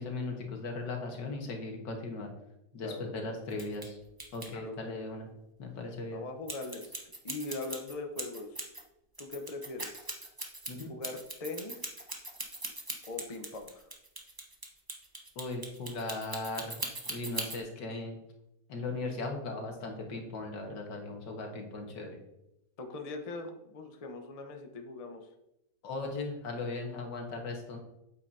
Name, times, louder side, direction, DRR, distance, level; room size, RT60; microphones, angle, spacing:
voice 1, 0.0-2.3 2.7-4.0 4.3-5.3 5.6-6.2 10.7-10.9 15.4-16.8 17.1-18.2 18.7-22.2 25.8-27.8, left 3 dB, 85° left, 2 dB, 2.1 m, -38 dB
voice 2, 2.8-3.1 4.5-5.1 6.1-8.7 9.2-9.9 10.9-11.9 13.0-13.9 22.8-25.3, left 3 dB, 30° left, 4 dB, 0.7 m, -41 dB
sound 1, 3.5-3.9 4.2-4.5 6.5-8.8 9.2-17.6, right 2 dB, 15° right, 0.8 m, -40 dB
8.7 x 8.0 x 2.7 m, 0.86 s
omnidirectional pair, 1.9 m